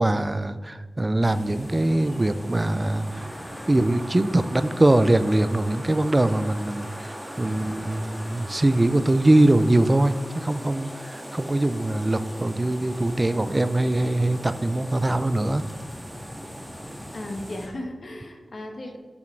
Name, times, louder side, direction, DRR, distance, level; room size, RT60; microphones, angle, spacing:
voice 1, 0.0-3.3 3.7-15.6, right 1 dB, 25° right, 12 dB, 0.4 m, -22 dB
sound 1, 1.2-17.7, equal, 5° right, 1.8 m, -39 dB
voice 2, 17.1-19.0, left 1 dB, 55° left, 3 dB, 1.2 m, -35 dB
7.4 x 6.2 x 4.5 m, 1.5 s
wide cardioid pair, 75°, 0 cm